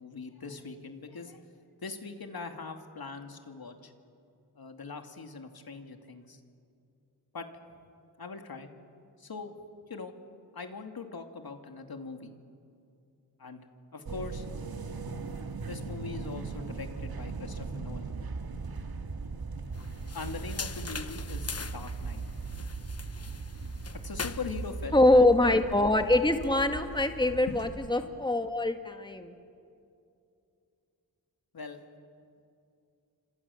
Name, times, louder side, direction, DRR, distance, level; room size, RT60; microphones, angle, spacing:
voice 1, 0.0-1.4 1.8-3.9 4.5-6.4 7.3-7.5 8.2-8.7 9.2-9.5 9.9-10.1 10.5-12.3 13.4-13.7 13.9-14.5 15.7-18.2 20.1-22.2 24.0-25.4 27.5-27.6 31.5-31.8, left 4 dB, 65° left, 5 dB, 2.7 m, -41 dB
sound 1, 14.1-27.9, right 4 dB, 60° right, 1.9 m, -39 dB
sound 2, 19.7-24.8, left 5 dB, 40° left, 1.1 m, -42 dB
voice 2, 24.9-29.4, left 2 dB, 10° left, 6 dB, 1.9 m, -24 dB
29.5 x 26.5 x 7.2 m, 2.6 s
cardioid pair, 50°, 40 cm